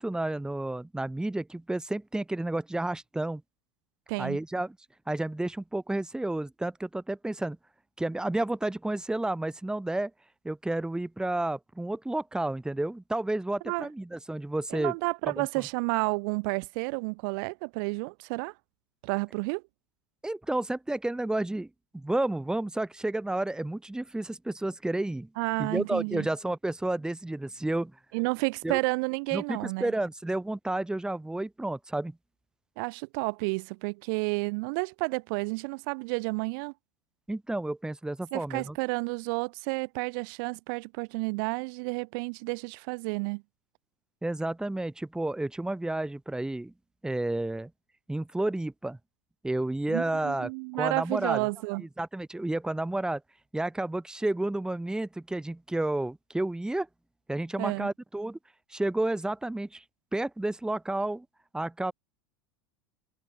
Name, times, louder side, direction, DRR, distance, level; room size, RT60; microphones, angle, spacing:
voice 1, 0.0-3.4 4.2-4.8 5.1-7.6 8.0-10.1 10.4-14.9 15.3-15.7 20.2-21.7 21.9-25.3 25.6-27.9 28.6-28.8 29.3-32.1 37.3-38.8 44.2-46.7 47.0-47.7 48.1-49.0 49.4-50.5 50.8-51.5 51.8-53.2 53.5-56.9 57.3-58.4 58.7-59.8 60.1-61.3 61.5-61.9, right 2 dB, 5° right, 2.1 m, -31 dB
voice 2, 14.7-18.5 19.0-19.6 25.4-26.3 28.1-29.9 32.8-36.7 38.3-43.4 49.9-51.8 57.6-57.9, right 32 dB, 60° right, 2.8 m, -31 dB
hypercardioid pair, 85°, 13 cm